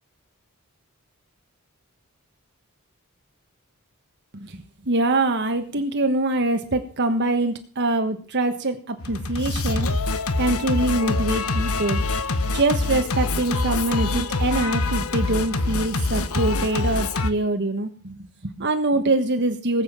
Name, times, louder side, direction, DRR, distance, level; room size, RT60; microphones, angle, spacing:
voice 1, 4.3-9.9 10.4-12.0 12.5-19.8, right 2 dB, 55° right, 7 dB, 1.5 m, -24 dB
Singing, 9.0-17.3, left 3 dB, 75° left, 1.3 m, -25 dB
19.0 x 8.2 x 7.1 m, 0.42 s
head